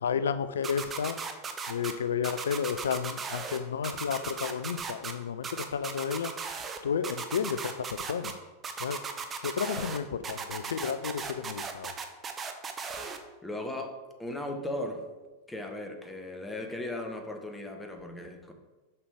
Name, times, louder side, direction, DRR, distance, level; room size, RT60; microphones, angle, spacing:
voice 1, 0.0-1.2 1.7-6.3 6.8-8.4 8.8-9.0 9.4-12.0, left 7 dB, 65° left, 12 dB, 0.3 m, -32 dB
sound 1, 0.6-1.9 2.2-3.6 3.8-5.1 5.4-6.8 7.0-8.3 8.6-10.0 10.2-13.2, right 5 dB, 20° right, 0.7 m, -36 dB
voice 2, 13.4-15.1 15.5-18.5, left 1 dB, 10° left, 4 dB, 0.9 m, -37 dB
6.7 x 5.4 x 3.4 m, 1.2 s
figure-of-eight pair, 90°, 0 cm